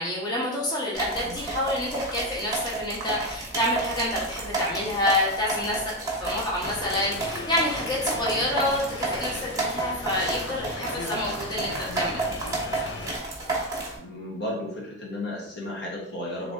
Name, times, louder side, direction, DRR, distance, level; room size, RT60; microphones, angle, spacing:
voice 1, 0.0-5.9 6.2-12.2, left 1 dB, 25° left, -5 dB, 1.1 m, -28 dB
sound 1, 0.9-14.0, right 2 dB, 20° right, 1.0 m, -31 dB
sound 2, 6.6-13.2, left 3 dB, 80° left, 0.5 m, -37 dB
voice 2, 14.0-16.5, left 1 dB, 60° left, -2 dB, 1.0 m, -34 dB
3.6 x 3.3 x 3.6 m, 0.76 s
head